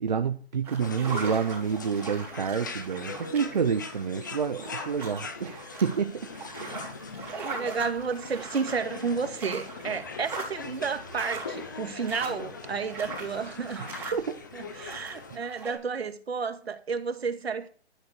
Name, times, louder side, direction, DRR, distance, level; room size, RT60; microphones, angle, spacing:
voice 1, 0.0-6.3 6.7-6.8 13.8-14.4 15.3-15.4, right 6 dB, 40° right, 0.8 m, -29 dB
sound 1, 0.6-15.7, right 3 dB, 5° right, 4.1 m, -41 dB
sound 2, 0.8-15.4, left 4 dB, 20° left, 0.7 m, -42 dB
voice 2, 7.4-14.1 14.5-17.7, right 5 dB, 70° right, 2.0 m, -32 dB
12.5 x 8.9 x 6.5 m
hypercardioid pair, 175°, 32 cm